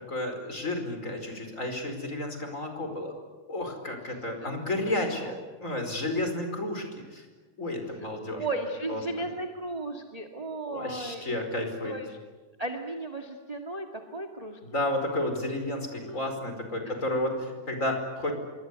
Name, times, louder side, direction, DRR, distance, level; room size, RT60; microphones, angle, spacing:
voice 1, 0.1-3.1 3.5-5.3 5.6-7.3 7.6-8.5 8.9-9.0 10.7-11.9 14.6-18.3, left 1 dB, 25° left, 5 dB, 5.1 m, -31 dB
voice 2, 8.0-11.4 11.8-12.2 12.6-14.6 16.0-16.2 16.8-16.9, right 2 dB, 15° right, 3 dB, 1.6 m, -35 dB
27.0 x 23.5 x 8.3 m, 1.3 s
omnidirectional pair, 3.4 m